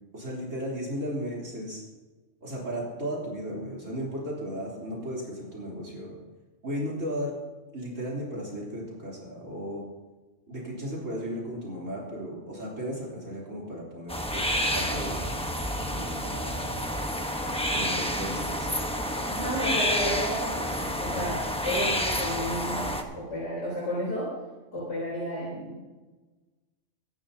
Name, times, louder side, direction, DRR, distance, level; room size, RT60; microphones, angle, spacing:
voice 1, 0.1-1.8 2.4-6.1 6.6-7.3 7.7-9.8 10.5-15.5 15.9-16.8 17.7-18.8, equal, 80° right, -5 dB, 4.0 m, -35 dB
sound 1, 14.1-23.0, equal, 5° left, 1.0 m, -29 dB
voice 2, 19.3-24.3 24.7-25.8, equal, 75° left, -6 dB, 4.2 m, -32 dB
23.5 x 10.5 x 2.8 m, 1.2 s
omnidirectional pair, 1.3 m